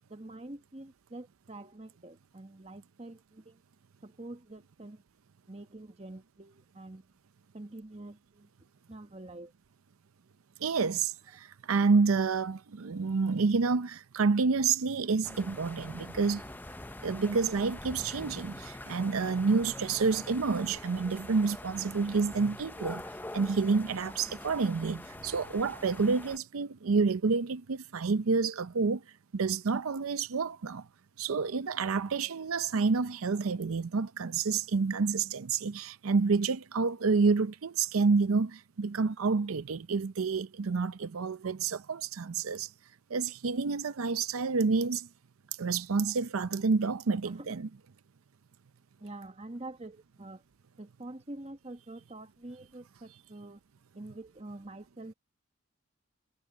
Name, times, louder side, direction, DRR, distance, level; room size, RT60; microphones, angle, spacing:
voice 1, 0.1-3.6 4.0-5.0 5.5-7.0 7.5-8.5 8.9-9.5 47.4-47.5 49.0-50.4 50.8-53.6 53.9-55.1, right 2 dB, 30° right, 1.3 m, -46 dB
voice 2, 10.6-16.4 17.0-23.0 23.3-29.0 29.3-30.9 31.2-42.7 43.1-45.1 45.6-47.7, right 4 dB, 85° right, 0.6 m, -29 dB
sound 1, 15.2-26.4, left 1 dB, 10° left, 0.5 m, -44 dB
head